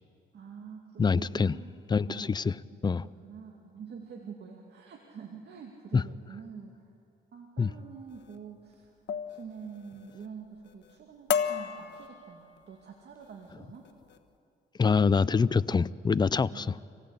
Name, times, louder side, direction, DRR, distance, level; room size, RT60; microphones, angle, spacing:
voice 1, 0.3-1.8 2.0-2.6 2.9-6.9 7.3-13.9 16.4-16.9, right 6 dB, 60° right, 1 dB, 2.5 m, -46 dB
voice 2, 1.0-1.6 1.9-2.5 2.8-3.1 5.9-6.0 7.6-7.7 14.8-16.8, left 5 dB, 20° left, 18 dB, 0.5 m, -25 dB
sound 1, 8.1-8.4 9.1-9.4 9.8-10.3 10.7-10.9 11.3-12.6 13.2-13.5 13.8-14.2, left 7 dB, 60° left, 1.2 m, -33 dB
27.0 x 17.5 x 8.3 m, 2.5 s
cardioid pair, 90°, 20 cm